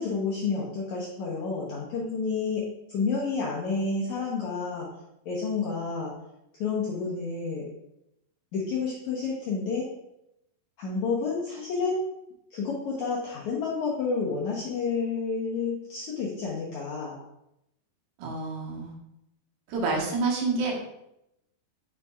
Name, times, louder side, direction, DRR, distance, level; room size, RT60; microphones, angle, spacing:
voice 1, 0.0-2.6 2.9-4.9 5.2-6.1 6.6-7.7 8.5-9.8 10.8-12.0 12.5-17.1, left 4 dB, 70° left, -5 dB, 1.8 m, -30 dB
voice 2, 18.2-19.0 19.7-20.8, right 3 dB, 80° right, -2 dB, 3.4 m, -28 dB
6.9 x 6.8 x 2.4 m, 0.83 s
omnidirectional pair, 4.7 m